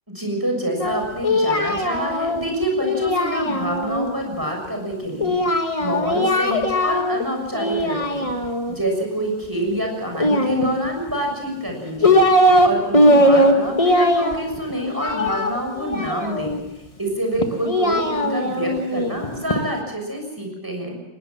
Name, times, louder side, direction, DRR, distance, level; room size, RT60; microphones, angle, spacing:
voice 1, 0.1-5.4 5.8-8.3 8.7-16.6 17.0-21.0, right 1 dB, 10° right, 2 dB, 6.6 m, -27 dB
Singing, 0.8-4.1 5.2-7.2 7.5-8.7 10.1-11.1 11.7-12.7 12.9-16.6 17.4-19.6, left 1 dB, 20° left, 1.6 m, -19 dB
21.5 x 18.5 x 7.3 m, 0.93 s
omnidirectional pair, 2.1 m